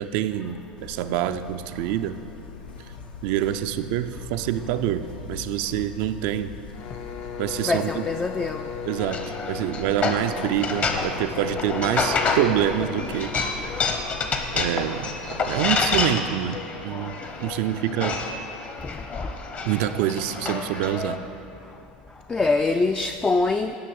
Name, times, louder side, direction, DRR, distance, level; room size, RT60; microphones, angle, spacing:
voice 1, 0.0-2.2 2.8-2.9 3.2-6.6 7.4-8.1 8.9-13.8 14.5-18.2 19.6-21.2, right 11 dB, 65° right, 9 dB, 0.4 m, -26 dB
Buzz, 0.8-15.8, left 6 dB, 85° left, 0.6 m, -42 dB
sound 1, 6.7-14.5, left 7 dB, 55° left, 0.9 m, -38 dB
voice 2, 7.6-8.7 18.8-18.9 19.2-19.3 22.3-23.8, left 3 dB, 20° left, 7 dB, 0.4 m, -24 dB
sound 2, 9.0-21.2, left 4 dB, 35° left, 1.1 m, -28 dB
10.0 x 5.7 x 7.0 m, 2.9 s
hypercardioid pair, 85°, 5 cm